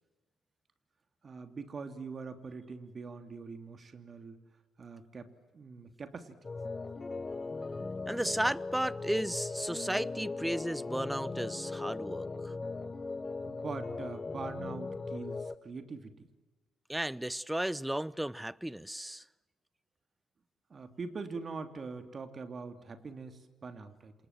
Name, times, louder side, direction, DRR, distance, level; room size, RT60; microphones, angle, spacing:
voice 1, 1.2-4.4 4.8-6.4 13.4-16.3 20.7-24.1, right 4 dB, 40° right, 3.0 m, -43 dB
sound 1, 6.4-15.6, left 3 dB, 25° left, 1.2 m, -39 dB
voice 2, 8.1-12.5 16.9-19.2, right 1 dB, 5° right, 0.8 m, -34 dB
28.0 x 27.5 x 7.5 m
hypercardioid pair, 50°, 0 cm